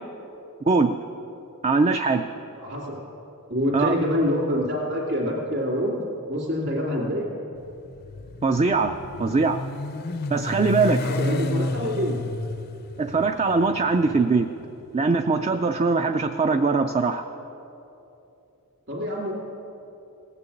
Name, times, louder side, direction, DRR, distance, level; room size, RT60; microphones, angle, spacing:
voice 1, 1.6-2.3 3.7-3.9 8.4-8.9 9.2-9.6 10.3-11.0 13.0-14.5 14.9-17.2, right 4 dB, 30° right, 6 dB, 0.4 m, -21 dB
voice 2, 2.6-3.0 3.5-6.0 6.3-7.3 11.0-12.2 18.9-19.3, equal, 50° right, -4 dB, 2.6 m, -26 dB
Motorcycle, 7.6-15.8, left 2 dB, 45° left, 0.5 m, -32 dB
17.5 x 6.8 x 8.4 m, 2.9 s
head